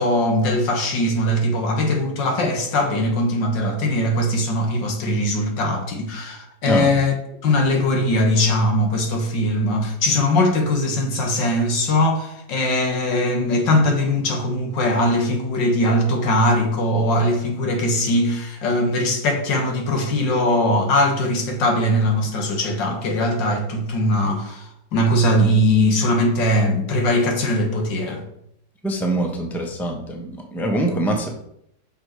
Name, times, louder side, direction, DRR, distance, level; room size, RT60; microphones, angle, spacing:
voice 1, 0.0-7.1 7.4-28.2, left 1 dB, 80° left, 2.1 m, -20 dB
voice 2, 28.8-31.3, right 1 dB, ahead, 0.8 m, -24 dB
6.7 x 5.5 x 4.8 m
omnidirectional pair, 1.9 m